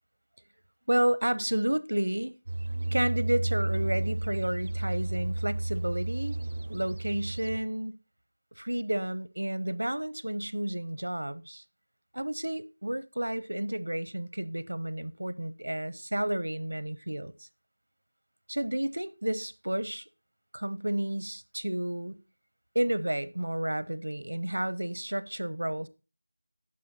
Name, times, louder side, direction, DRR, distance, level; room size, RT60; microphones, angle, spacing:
voice 1, 0.9-2.3 2.9-6.4 6.7-8.0 8.6-11.6 12.1-17.5 18.5-20.0 20.5-22.2 22.7-25.9, right 1 dB, 90° right, 0.7 m, -31 dB
sound 1, 2.5-7.6, right 2 dB, 55° right, 0.5 m, -32 dB
9.5 x 6.9 x 4.1 m
figure-of-eight pair, 175°, 0 cm